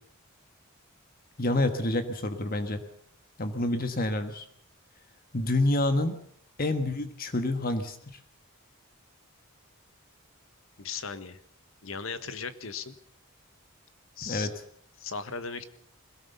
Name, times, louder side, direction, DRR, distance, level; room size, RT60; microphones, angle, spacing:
voice 1, 1.4-2.8 3.4-4.4 5.3-6.2 6.6-8.0 14.3-14.5, left 2 dB, 40° left, 8 dB, 1.5 m, -27 dB
voice 2, 10.8-11.4 11.8-13.0 14.2-14.5 15.0-15.6, left 5 dB, 65° left, 11 dB, 1.4 m, -37 dB
22.0 x 17.5 x 6.9 m, 0.63 s
head